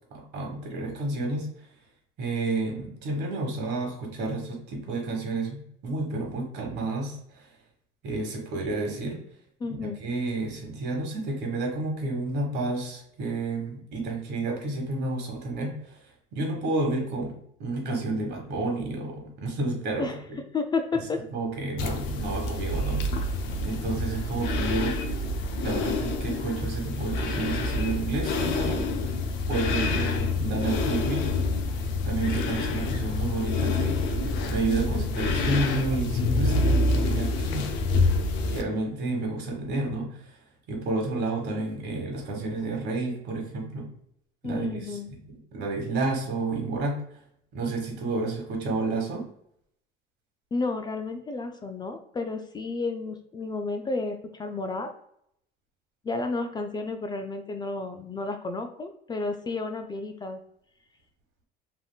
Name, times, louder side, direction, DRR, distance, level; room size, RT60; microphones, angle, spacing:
voice 1, 0.1-1.7 2.2-7.5 8.0-9.2 9.7-16.1 16.3-20.4 21.3-23.3 23.6-25.0 25.6-29.2 29.5-31.2 31.5-31.6 32.0-37.7 38.5-40.4 40.7-43.9 44.4-47.0 47.5-49.2, right 2 dB, 65° right, 1 dB, 1.1 m, -30 dB
voice 2, 9.6-10.0 20.0-20.1 20.5-21.2 34.7-35.1 44.4-45.1 50.5-54.9 56.0-60.4, left 3 dB, 20° left, 6 dB, 0.3 m, -31 dB
sound 1, 21.8-38.6, left 2 dB, 75° left, 0.5 m, -27 dB
3.3 x 2.7 x 2.2 m, 0.71 s
cardioid pair, 105°, 19 cm